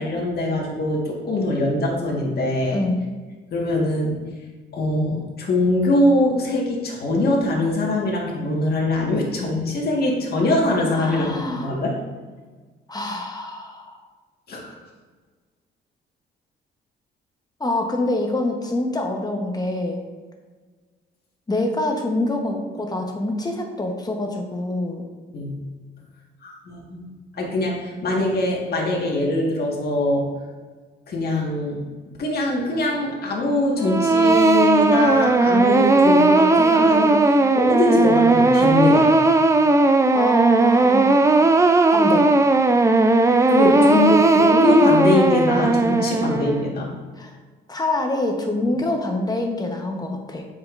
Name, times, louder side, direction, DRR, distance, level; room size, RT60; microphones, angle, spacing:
voice 1, 0.0-2.8 3.5-4.2 4.7-12.0 14.5-14.7 25.3-25.6 26.4-30.3 31.1-31.8 32.2-39.1 43.5-46.9, left 2 dB, 50° left, -2 dB, 1.6 m, -22 dB
voice 2, 2.7-3.0 10.9-11.8 12.9-14.0 17.6-20.0 21.5-25.1 40.1-41.6 41.9-42.3 43.8-44.0 47.2-47.4 47.7-50.5, left 2 dB, 20° left, 3 dB, 1.0 m, -26 dB
sound 1, 33.8-46.7, right 2 dB, 15° right, 0.4 m, -16 dB
7.2 x 5.2 x 2.5 m, 1.4 s
cardioid pair, 90°, 20 cm